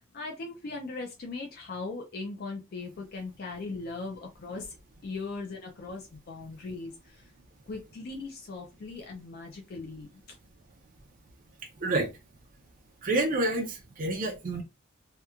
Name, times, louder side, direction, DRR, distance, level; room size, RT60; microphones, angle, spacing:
voice 1, 0.1-4.8 5.0-7.3 7.7-10.2, left 3 dB, 50° left, 0.4 m, -39 dB
voice 2, 11.6-12.2 13.0-14.6, right 2 dB, 40° right, 0.4 m, -29 dB
2.9 x 2.2 x 2.3 m
head